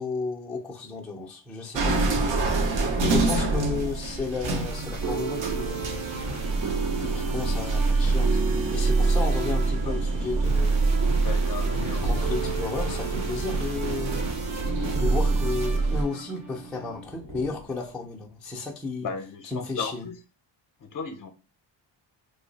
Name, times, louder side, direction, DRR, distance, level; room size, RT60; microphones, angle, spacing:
voice 1, 0.0-2.3 3.0-6.2 7.0-10.8 11.7-14.3 15.0-19.1 19.4-20.1, left 3 dB, ahead, 0.4 m, -33 dB
sound 1, 1.7-16.0, right 3 dB, 75° right, 0.7 m, -26 dB
sound 2, 4.2-17.0, right 4 dB, 40° right, 0.6 m, -34 dB
sound 3, 5.8-6.6 7.1-8.3 8.9-11.3 11.6-18.2, equal, 55° right, 1.0 m, -41 dB
voice 2, 11.2-12.3 12.8-13.0 19.0-20.2 20.8-21.3, left 5 dB, 45° left, 0.5 m, -36 dB
2.7 x 2.0 x 3.8 m
cardioid pair, 135°, 45 cm